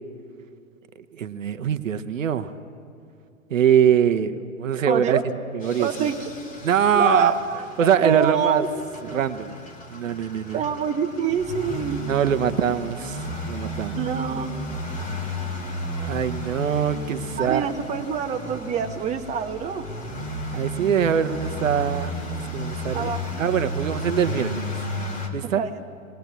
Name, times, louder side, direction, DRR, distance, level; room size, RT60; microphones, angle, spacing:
voice 1, 1.1-2.5 3.5-5.2 5.5-6.1 6.6-7.4 7.8-8.6 9.1-9.6 9.9-10.6 12.1-14.0 16.0-17.7 20.5-23.1 23.4-24.7 25.3-25.6, right 8 dB, 70° right, 11 dB, 1.0 m, -23 dB
voice 2, 4.9-5.2 5.8-6.3 6.9-8.7 10.5-12.0 13.9-14.5 17.4-19.9 22.9-23.4 25.4-25.8, right 7 dB, 15° right, 3 dB, 1.1 m, -26 dB
sound 1, 5.6-25.3, equal, 20° left, 2.4 m, -33 dB
21.0 x 18.5 x 8.3 m, 2.4 s
figure-of-eight pair, 115°, 40 cm